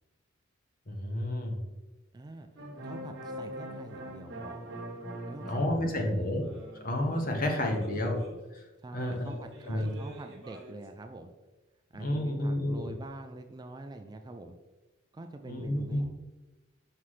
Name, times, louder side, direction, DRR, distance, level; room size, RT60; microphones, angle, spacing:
voice 1, 0.9-1.6 5.5-6.5 6.8-8.2 8.5-8.6 8.9-9.9 12.0-12.9 15.4-16.0, left 1 dB, 45° left, 3 dB, 1.0 m, -31 dB
voice 2, 2.1-2.5 2.8-4.7 5.2-6.3 7.4-8.1 8.8-11.3 11.9-14.6 15.1-16.1, right 2 dB, 20° right, 6 dB, 0.3 m, -45 dB
sound 1, 2.6-5.9 6.2-8.4 9.0-10.9, right 1 dB, 60° right, 1.5 m, -43 dB
5.7 x 5.7 x 3.2 m, 1.1 s
head